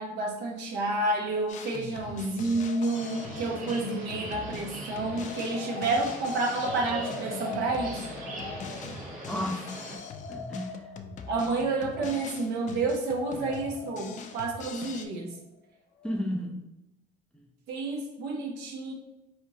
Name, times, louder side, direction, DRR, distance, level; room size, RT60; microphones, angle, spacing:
voice 1, 0.0-8.1 11.3-15.3 17.7-18.9, right 2 dB, 80° right, 0 dB, 0.9 m, -30 dB
Drum kit, 1.5-15.1, left 5 dB, 45° left, 0.4 m, -43 dB
sound 1, 2.1-15.6 16.0-16.2, left 4 dB, 80° left, 0.7 m, -44 dB
sound 2, 2.9-10.0, right 1 dB, 50° right, 1.4 m, -40 dB
voice 2, 9.3-10.0 10.3-10.9 16.0-16.6 17.3-17.5, left 1 dB, 5° left, 0 dB, 0.6 m, -33 dB
4.1 x 3.4 x 2.8 m, 0.94 s
cardioid pair, 110°, 17 cm